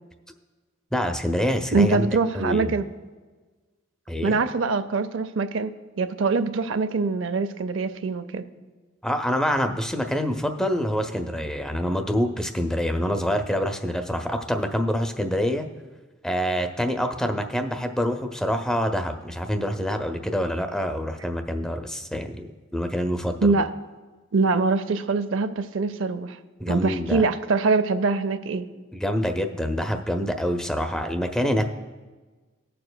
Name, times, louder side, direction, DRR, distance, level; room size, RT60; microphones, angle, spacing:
voice 1, 0.9-2.1 2.3-2.7 4.1-4.4 9.0-15.7 16.2-22.5 22.7-23.6 26.6-27.2 28.9-31.7, equal, 5° left, 0.5 m, -26 dB
voice 2, 1.7-2.9 4.2-8.4 23.4-23.7 24.3-26.4 26.7-28.7, right 4 dB, 75° right, 0.5 m, -23 dB
19.5 x 6.8 x 2.2 m
head